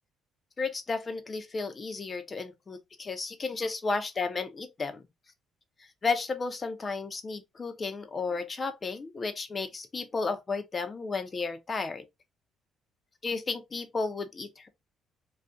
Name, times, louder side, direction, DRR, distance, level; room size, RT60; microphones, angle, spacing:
voice 1, 0.6-5.0 6.0-12.1 13.2-14.7, left 4 dB, 30° left, 0.7 m, -33 dB
2.6 x 2.3 x 3.5 m
cardioid pair, 95°, 0 cm